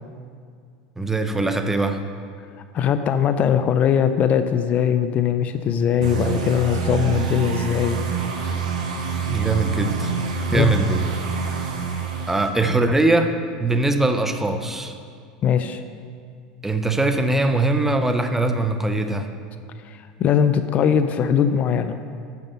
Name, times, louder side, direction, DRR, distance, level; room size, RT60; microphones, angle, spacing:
voice 1, 1.0-2.0 9.3-10.1 10.5-11.0 12.3-13.3 13.6-14.9 16.6-19.3, right 2 dB, 10° right, 7 dB, 0.6 m, -21 dB
voice 2, 2.7-8.0 10.5-10.8 15.4-15.8 19.9-22.0, left 8 dB, 40° left, 10 dB, 0.4 m, -20 dB
sound 1, 6.0-12.5, right 6 dB, 85° right, 1.1 m, -26 dB
7.1 x 6.6 x 5.5 m, 2.2 s
hypercardioid pair, 95°, 4 cm